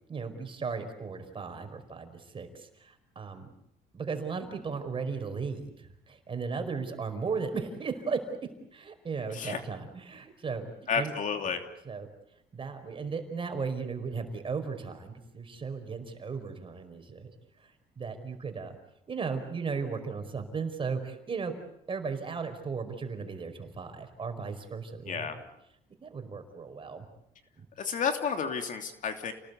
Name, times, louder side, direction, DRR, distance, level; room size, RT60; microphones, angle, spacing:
voice 1, 0.1-3.5 3.9-11.1 11.8-12.1 12.5-17.3 17.6-18.7 19.1-21.5 21.9-25.4 26.0-27.1 27.6-28.0, right 5 dB, 30° right, 7 dB, 5.0 m, -36 dB
voice 2, 10.9-11.6 25.1-25.4 27.8-29.3, left 6 dB, 50° left, 6 dB, 3.1 m, -31 dB
29.5 x 19.0 x 8.3 m, 0.78 s
cardioid pair, 110°, 17 cm